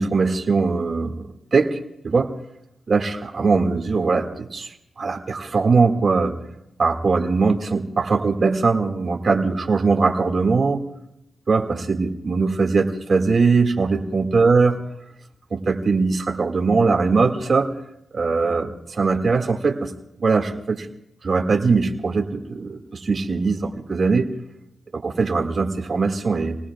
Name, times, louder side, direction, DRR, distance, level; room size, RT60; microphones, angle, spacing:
voice 1, 0.0-1.8 2.0-2.3 2.9-4.7 5.0-6.3 6.8-10.8 11.5-14.8 15.5-17.7 18.1-19.9 20.2-20.9 21.2-24.3 24.9-26.6, right 4 dB, 50° right, 3 dB, 2.0 m, -21 dB
28.5 x 19.0 x 2.4 m, 0.83 s
cardioid pair, 80°, 0 cm